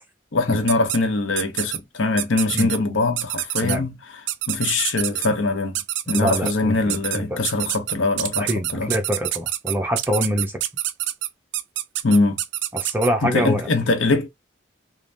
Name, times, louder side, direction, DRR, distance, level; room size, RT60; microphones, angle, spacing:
voice 1, 0.3-3.9 4.5-5.7 6.1-8.9 12.0-12.4 13.2-14.3, left 3 dB, 85° left, 0.8 m, -22 dB
sound 1, 0.7-1.0 1.4-1.8 2.2-2.8 3.2-3.8 4.3-5.3 5.8-6.5 6.9-7.2 7.4-13.1, right 14 dB, 65° right, 0.3 m, -26 dB
voice 2, 6.1-7.4 8.2-10.6 12.7-13.7, equal, 10° right, 0.6 m, -25 dB
3.4 x 2.1 x 2.5 m
head